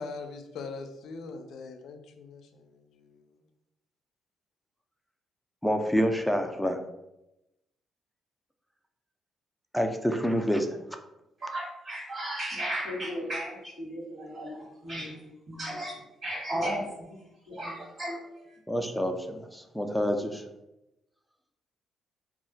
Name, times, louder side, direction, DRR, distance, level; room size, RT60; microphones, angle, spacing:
voice 1, 0.0-3.3, left 4 dB, 75° left, 6 dB, 0.4 m, -42 dB
voice 2, 5.6-6.8 9.7-10.8 18.7-20.4, equal, ahead, 5 dB, 0.4 m, -27 dB
voice 3, 11.4-15.1 15.5-15.9 16.2-18.6, equal, 45° right, -7 dB, 1.2 m, -35 dB
2.3 x 2.0 x 3.8 m, 0.91 s
cardioid pair, 90°, 0 cm